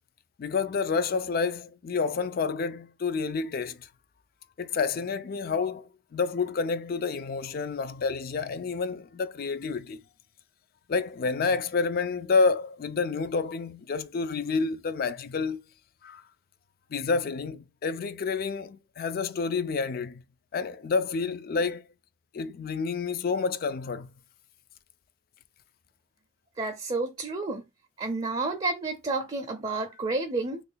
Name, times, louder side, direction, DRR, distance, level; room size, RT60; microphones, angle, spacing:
voice 1, 0.4-3.9 4.6-10.0 10.9-15.6 16.0-16.2 16.9-20.2 20.5-21.9 22.3-24.1, left 4 dB, 50° left, 0.3 m, -29 dB
voice 2, 26.6-27.6 28.0-30.6, right 3 dB, 30° right, 0.5 m, -30 dB
3.1 x 2.2 x 3.8 m
head